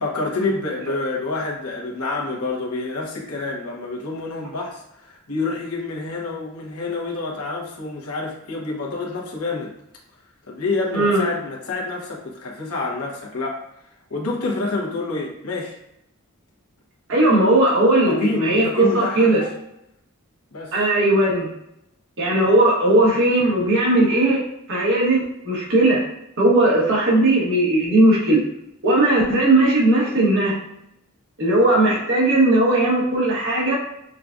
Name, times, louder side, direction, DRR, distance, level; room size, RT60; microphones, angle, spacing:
voice 1, 0.0-9.7 10.5-13.6 14.1-15.8 18.1-19.5 20.5-20.7, left 3 dB, 85° left, -2 dB, 1.0 m, -27 dB
voice 2, 10.9-11.3 17.1-19.5 20.7-21.5 22.2-24.4 24.7-26.0 26.4-28.4 28.8-30.5 31.4-33.8, right 1 dB, 60° right, -5 dB, 1.5 m, -17 dB
6.3 x 2.3 x 2.5 m, 0.80 s
head